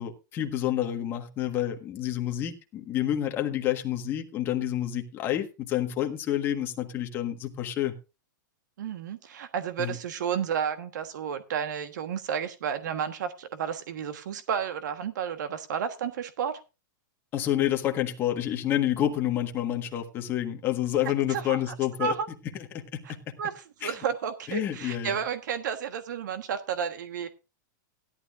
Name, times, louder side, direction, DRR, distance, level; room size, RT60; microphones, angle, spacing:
voice 1, 0.0-7.9 9.8-10.0 17.3-22.1 22.9-23.3 23.8-23.9 24.5-25.2, left 12 dB, 20° left, 1.5 m, -29 dB
voice 2, 8.8-16.6 21.3-21.7 22.0-22.3 23.0-27.3, right 7 dB, 65° right, 1.3 m, -32 dB
16.5 x 11.5 x 2.5 m
supercardioid pair, 170°, 10 cm